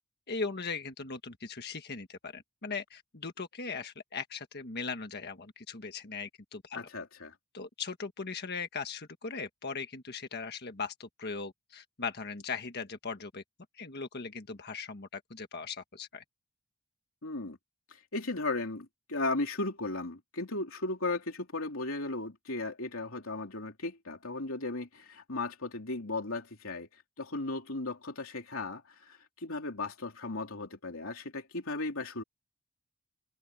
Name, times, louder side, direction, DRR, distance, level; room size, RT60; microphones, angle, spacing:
voice 1, 0.3-6.8 7.5-13.4 13.7-16.2, left 4 dB, 50° left, 1.5 m, -39 dB
voice 2, 6.7-7.3 17.2-17.6 17.9-32.2, left 2 dB, 70° left, 3.3 m, -36 dB
head